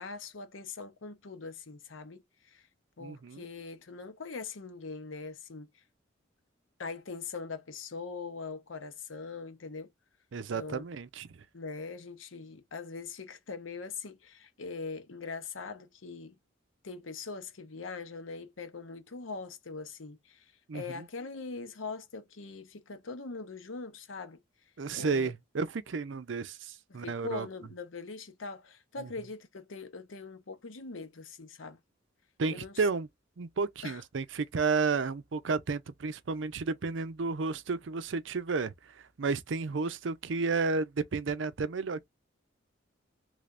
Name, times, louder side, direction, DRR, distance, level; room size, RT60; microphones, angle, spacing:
voice 1, 0.0-2.7 3.0-5.8 6.8-9.9 10.5-10.8 11.5-16.4 16.8-24.4 24.9-25.3 26.9-31.8 32.5-32.8 33.8-34.0, left 4 dB, 85° left, 0.8 m, -42 dB
voice 2, 3.0-3.5 10.3-11.4 20.7-21.1 24.8-27.5 29.0-29.1 32.4-33.1 33.4-42.0, right 4 dB, 70° right, 0.5 m, -32 dB
3.3 x 3.3 x 2.5 m
head